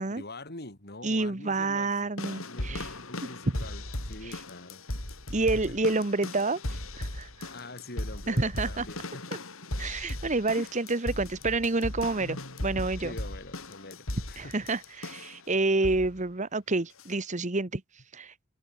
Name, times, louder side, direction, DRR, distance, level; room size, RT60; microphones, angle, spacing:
voice 1, 0.2-4.8 5.5-5.8 7.5-9.4 10.6-10.7 11.1-11.4 13.0-14.7 15.1-15.4, left 2 dB, 50° left, 4.3 m, -45 dB
voice 2, 1.0-2.9 4.2-4.3 5.3-6.6 7.0-7.5 8.3-8.9 9.8-13.1 14.4-17.8 18.1-18.3, right 3 dB, 35° right, 1.2 m, -28 dB
sound 1, 2.2-15.4 15.8-16.2 17.0-17.1, left 1 dB, 90° left, 5.2 m, -37 dB
head